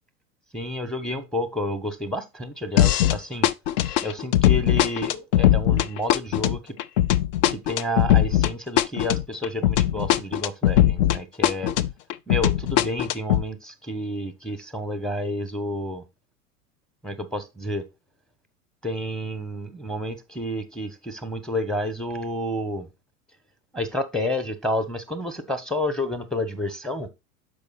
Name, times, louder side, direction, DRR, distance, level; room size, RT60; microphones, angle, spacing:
voice 1, 0.5-3.5 4.0-6.8 7.5-11.7 12.3-16.0 17.0-17.9 18.8-22.9 23.7-27.1, left 1 dB, ahead, 0.9 m, -30 dB
sound 1, 2.8-3.2 3.4-11.2 11.4-13.4, left 12 dB, 40° left, 0.4 m, -20 dB
6.8 x 5.0 x 4.1 m
figure-of-eight pair, 90°, 45 cm